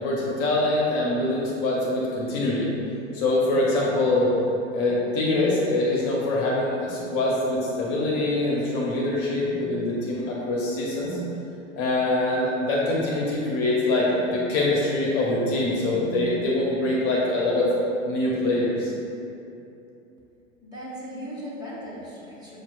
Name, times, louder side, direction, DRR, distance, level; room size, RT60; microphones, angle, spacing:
voice 1, 0.0-2.7 3.1-4.3 4.7-11.2 11.8-17.7 18.0-18.9, left 2 dB, 40° left, -4 dB, 0.9 m, -24 dB
voice 2, 20.6-22.6, equal, 10° right, -8 dB, 1.1 m, -37 dB
7.1 x 2.6 x 2.4 m, 2.8 s
hypercardioid pair, 95°, 37 cm